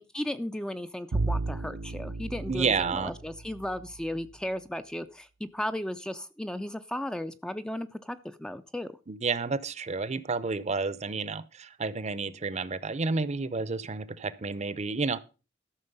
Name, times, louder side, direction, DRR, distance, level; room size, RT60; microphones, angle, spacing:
voice 1, 0.0-8.9, left 1 dB, 5° left, 0.4 m, -35 dB
Bowed string instrument, 1.1-4.2, right 3 dB, 75° right, 0.6 m, -33 dB
voice 2, 2.5-3.1 9.1-15.2, right 4 dB, 35° right, 0.7 m, -30 dB
13.0 x 6.3 x 5.4 m
head